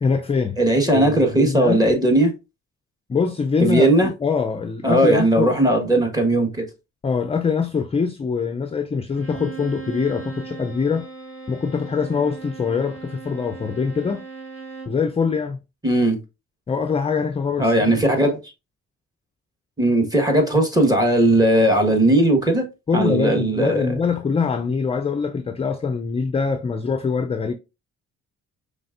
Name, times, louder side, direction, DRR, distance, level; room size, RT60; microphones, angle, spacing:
voice 1, 0.0-0.6 0.9-1.9 3.1-5.5 7.0-11.1 11.5-14.2 14.9-15.6 16.7-18.0 22.9-27.5, left 5 dB, 20° left, 0.4 m, -23 dB
voice 2, 0.6-2.3 3.6-4.1 4.8-6.6 15.8-16.2 17.6-18.4 19.8-22.6 22.9-23.9, right 1 dB, 10° right, 1.3 m, -18 dB
Bowed string instrument, 9.1-15.0, right 5 dB, 45° right, 2.4 m, -38 dB
5.1 x 3.3 x 2.5 m
cardioid pair, 90°, 30 cm